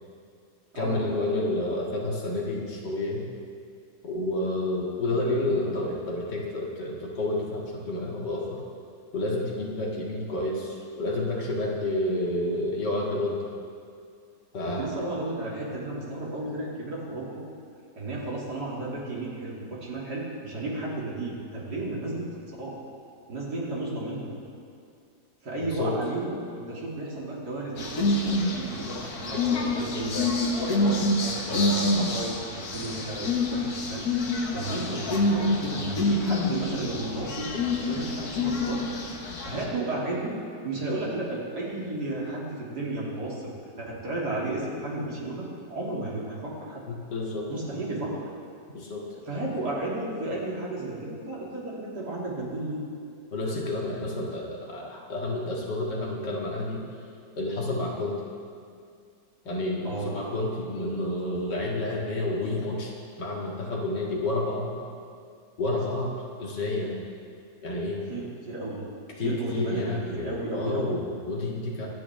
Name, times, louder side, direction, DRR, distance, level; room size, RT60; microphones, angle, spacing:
voice 1, 0.7-3.3 4.0-8.6 9.1-13.4 14.5-14.9 25.6-26.0 46.9-47.5 48.7-49.0 53.3-56.8 57.4-58.2 59.5-62.9 63.2-64.7 65.6-66.1 66.4-67.0 67.6-68.0 69.2-71.9, left 2 dB, 85° left, -3 dB, 2.6 m, -29 dB
voice 2, 14.6-17.4 18.0-22.3 22.6-22.8 23.3-24.3 25.4-34.0 34.5-38.8 39.4-40.4 40.6-43.5 43.8-46.8 47.5-48.3 49.2-52.8 59.8-60.2 68.1-68.8 69.2-71.0, right 2 dB, 70° right, -5 dB, 3.3 m, -33 dB
sound 1, 27.8-39.6, left 2 dB, 60° left, 1.8 m, -27 dB
24.0 x 8.7 x 3.6 m, 2.4 s
omnidirectional pair, 1.8 m